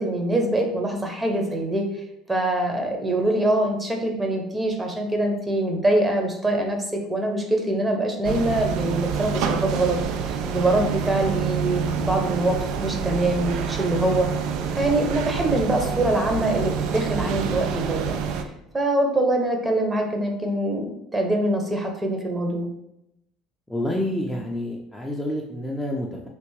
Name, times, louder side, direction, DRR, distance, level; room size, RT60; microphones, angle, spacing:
voice 1, 0.0-1.9 2.3-6.8 7.1-14.3 14.8-18.2 18.7-22.7, right 1 dB, 20° right, 3 dB, 0.8 m, -24 dB
sound 1, 8.2-18.4, right 7 dB, 70° right, 0.3 m, -27 dB
voice 2, 23.7-26.3, left 1 dB, 5° left, -2 dB, 0.5 m, -28 dB
3.3 x 2.5 x 3.2 m, 0.82 s
hypercardioid pair, 80°, 0 cm